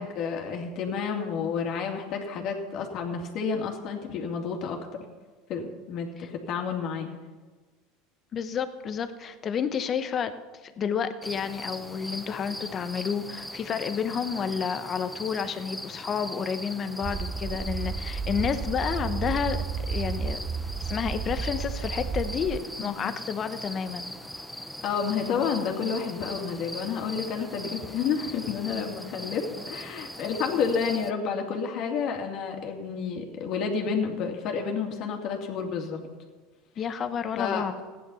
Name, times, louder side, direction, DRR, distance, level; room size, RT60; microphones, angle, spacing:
voice 1, 0.0-4.8 5.5-7.1 22.8-22.9 24.8-36.0 37.4-37.6, left 6 dB, 55° left, 2 dB, 2.6 m, -30 dB
voice 2, 8.3-10.3 10.6-19.6 19.9-20.4 20.8-24.1 36.8-37.8, left 7 dB, 40° left, 10 dB, 1.1 m, -30 dB
sound 1, 11.2-31.1, equal, ahead, 0.8 m, -40 dB
sound 2, 17.0-22.6, right 5 dB, 30° right, 0.7 m, -32 dB
15.5 x 10.5 x 5.7 m, 1.3 s
hypercardioid pair, 90°, 0 cm